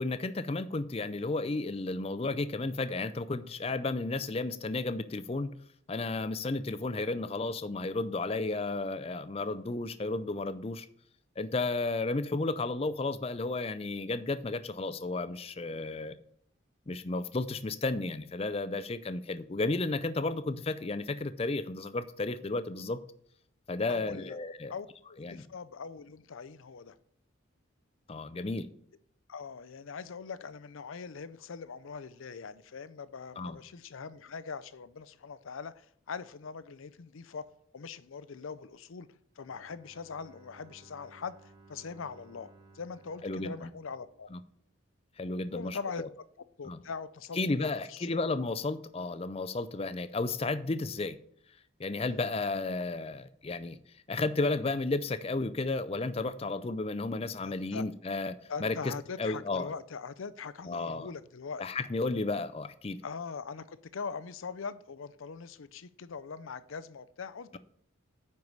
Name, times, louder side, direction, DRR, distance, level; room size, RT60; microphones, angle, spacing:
voice 1, 0.0-5.5 5.9-10.9 11.4-16.2 16.9-23.0 23.7-24.7 25.2-25.4 28.1-28.7 33.4-33.6 43.2-43.7 44.3-44.4 45.2-46.1 46.6-46.8 47.3-51.2 51.8-53.8 54.1-58.3 58.6-58.9 59.2-59.7 60.7-61.1 61.6-63.0, left 3 dB, 30° left, 0.4 m, -33 dB
voice 2, 23.9-24.4 24.7-27.0 29.3-35.7 36.1-37.5 37.7-39.1 39.4-44.3 45.5-46.0 46.6-48.2 57.4-57.8 58.5-61.6 63.0-67.6, left 5 dB, 80° left, 0.5 m, -42 dB
Bowed string instrument, 39.4-45.3, right 3 dB, 20° right, 0.8 m, -60 dB
9.7 x 4.7 x 5.4 m
head